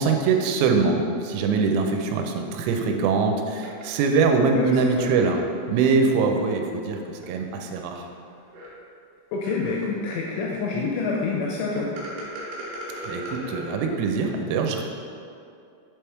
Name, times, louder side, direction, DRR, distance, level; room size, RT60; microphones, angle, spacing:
voice 1, 0.0-8.0 13.1-14.8, right 4 dB, 90° right, 3 dB, 3.3 m, -23 dB
sound 1, 3.6-3.8 5.0-5.9 6.3-6.4 7.2-7.3 8.0-8.1 8.5-8.7 9.4-9.9 11.8-13.8, right 1 dB, 70° right, 2.7 m, -37 dB
voice 2, 4.5-5.1 9.3-11.9, left 4 dB, 85° left, -2 dB, 2.7 m, -27 dB
7.4 x 3.4 x 4.5 m, 2.5 s
omnidirectional pair, 6.0 m